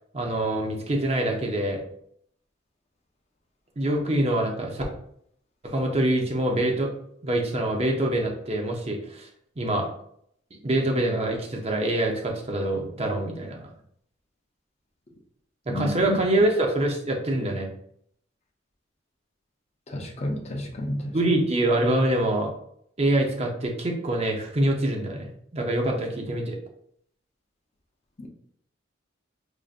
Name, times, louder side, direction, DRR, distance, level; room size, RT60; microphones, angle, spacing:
voice 1, 0.1-1.8 3.8-4.8 5.6-6.9 7.2-9.3 9.6-9.9 10.6-13.6 15.7-17.7 21.1-22.5 23.0-26.6, right 1 dB, 30° right, 0 dB, 0.6 m, -25 dB
voice 2, 15.7-16.0 19.9-21.1 28.2-28.3, left 1 dB, 30° left, 1 dB, 0.6 m, -31 dB
4.8 x 2.6 x 2.4 m, 0.69 s
head